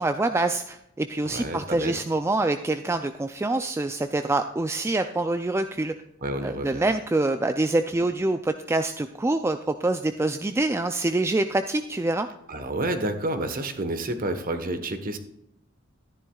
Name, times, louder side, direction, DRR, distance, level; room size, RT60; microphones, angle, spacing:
voice 1, 0.0-5.9 6.4-12.3, right 2 dB, 15° right, 8 dB, 0.3 m, -25 dB
voice 2, 1.3-1.9 6.2-6.9 12.5-15.2, right 1 dB, 45° right, 8 dB, 1.2 m, -29 dB
13.0 x 11.0 x 2.3 m, 0.81 s
head